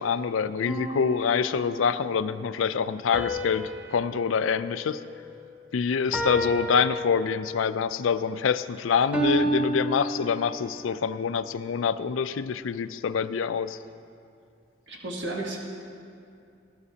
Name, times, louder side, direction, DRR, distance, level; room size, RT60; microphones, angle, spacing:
voice 1, 0.0-5.0 5.7-13.8, left 6 dB, 90° left, 13 dB, 0.4 m, -26 dB
sound 1, 0.7-2.1 3.1-5.6 6.1-7.7 9.1-10.8, right 1 dB, 10° right, 0.8 m, -31 dB
voice 2, 14.9-15.6, right 2 dB, 65° right, -1 dB, 1.4 m, -33 dB
19.0 x 11.5 x 2.8 m, 2.4 s
head